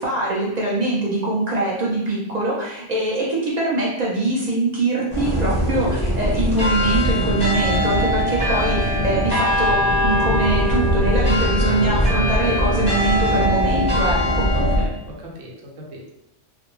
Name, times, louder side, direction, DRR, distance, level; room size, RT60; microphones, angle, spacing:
voice 1, 0.0-14.4, right 2 dB, 55° right, -5 dB, 0.4 m, -23 dB
sound 1, 5.1-14.8, equal, 5° left, 0.6 m, -20 dB
voice 2, 14.5-16.1, right 1 dB, 90° right, -2 dB, 1.0 m, -35 dB
2.4 x 2.2 x 3.0 m, 0.86 s
omnidirectional pair, 1.3 m